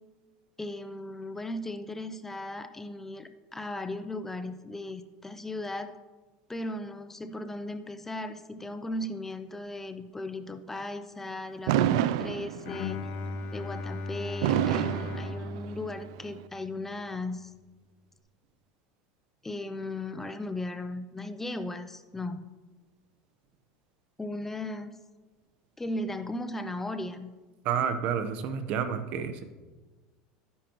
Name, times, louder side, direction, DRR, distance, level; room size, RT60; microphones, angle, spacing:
voice 1, 0.6-5.9 6.5-13.0 13.5-17.5 19.4-22.5 24.2-25.0 25.8-27.3, left 1 dB, 10° left, 10 dB, 0.6 m, -37 dB
Fireworks, 11.7-13.0 14.4-16.0, right 11 dB, 75° right, 0.4 m, -27 dB
Bowed string instrument, 12.7-16.8, left 3 dB, 55° left, 0.9 m, -37 dB
voice 2, 27.6-29.4, right 7 dB, 55° right, 9 dB, 1.0 m, -30 dB
13.0 x 10.0 x 3.0 m, 1.3 s
supercardioid pair, 115°, 3 cm